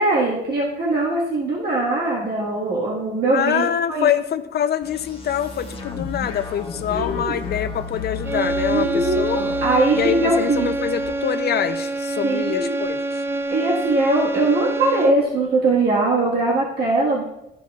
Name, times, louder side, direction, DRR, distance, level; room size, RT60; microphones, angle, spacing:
voice 1, 0.0-4.1 6.9-7.3 8.7-10.7 12.2-12.8 13.5-17.2, right 2 dB, 50° right, -5 dB, 1.7 m, -21 dB
voice 2, 3.3-9.4 9.9-13.2, left 9 dB, 50° left, 10 dB, 0.6 m, -25 dB
sound 1, 4.8-11.1, left 5 dB, 25° left, 1.5 m, -33 dB
sound 2, 8.2-15.4, right 2 dB, 10° right, 0.4 m, -26 dB
13.0 x 6.0 x 2.4 m, 0.89 s
cardioid pair, 110°, 21 cm